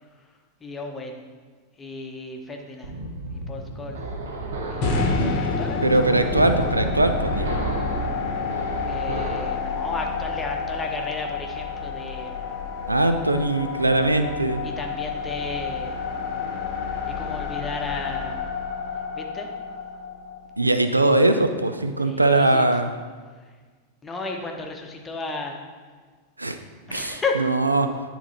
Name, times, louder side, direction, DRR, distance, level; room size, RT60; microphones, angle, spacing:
voice 1, 0.6-1.2 1.8-2.9 3.5-4.0 4.7-5.9 8.9-12.5 14.8-15.9 17.2-18.4 19.1-19.5 22.0-22.6 24.0-25.6 26.9-27.4, left 3 dB, 15° left, 2 dB, 0.9 m, -33 dB
sound 1, 2.8-9.6, right 1 dB, 65° right, 0.9 m, -32 dB
sound 2, 4.8-21.0, left 4 dB, 40° left, 0.9 m, -29 dB
voice 2, 5.8-7.6 12.9-14.6 20.6-22.9 26.4-26.6 26.9-27.9, right 2 dB, 85° right, 8 dB, 0.4 m, -21 dB
9.9 x 4.0 x 4.1 m, 1.5 s
figure-of-eight pair, 90°, 0 cm